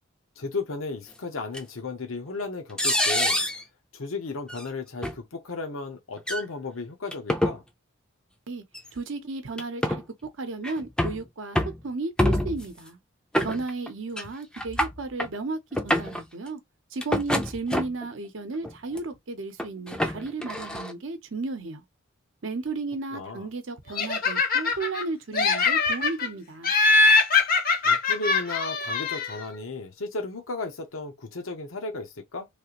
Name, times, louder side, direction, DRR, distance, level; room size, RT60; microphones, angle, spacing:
voice 1, 0.4-3.4 3.9-7.6 23.1-23.5 27.8-32.5, left 3 dB, 80° left, 0.8 m, -34 dB
sound 1, 1.5-1.6 2.8-3.6 4.5-4.6 5.0-5.2 6.2-6.4 7.1-7.6 8.7-8.9 9.6-10.0 10.6-11.2 11.6-11.8 12.2-12.7 13.3-13.9 14.2-14.3 14.5-15.3 15.7-16.2 17.0-18.1 18.6-19.0 19.6-20.9, left 1 dB, 5° left, 0.5 m, -26 dB
voice 2, 8.9-11.6 11.8-13.0 13.4-16.6 16.9-21.8 22.4-26.7, right 3 dB, 65° right, 0.7 m, -34 dB
Laughter, 24.0-25.0 25.3-26.3 26.6-29.4, left 3 dB, 45° left, 0.7 m, -22 dB
3.3 x 2.4 x 2.9 m
head